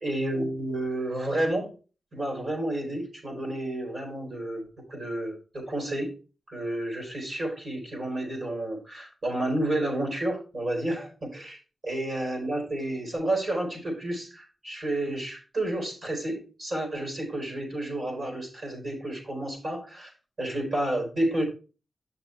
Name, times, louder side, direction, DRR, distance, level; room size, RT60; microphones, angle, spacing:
voice 1, 0.0-1.7 2.1-6.1 6.5-11.6 11.8-20.1 20.4-21.4, right 1 dB, 50° right, 4.1 m, -30 dB
9.2 x 6.0 x 3.3 m
wide cardioid pair, 175°, 0 cm